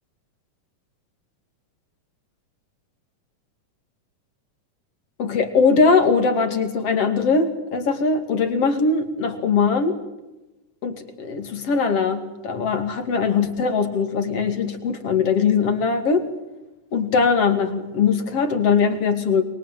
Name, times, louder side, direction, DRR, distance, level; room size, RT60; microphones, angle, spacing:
voice 1, 5.2-9.9 10.8-16.2 16.9-19.4, left 5 dB, 50° left, 8 dB, 3.2 m, -21 dB
29.0 x 22.5 x 7.6 m, 1.0 s
omnidirectional pair, 3.7 m